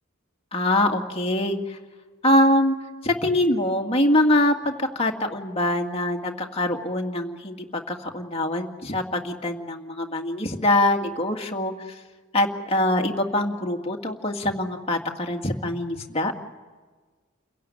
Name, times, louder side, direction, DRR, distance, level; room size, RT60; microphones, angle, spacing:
voice 1, 0.5-1.8 2.2-2.8 3.0-11.7 12.3-16.3, left 1 dB, 30° left, 2 dB, 2.1 m, -23 dB
29.5 x 17.0 x 9.9 m, 1.4 s
head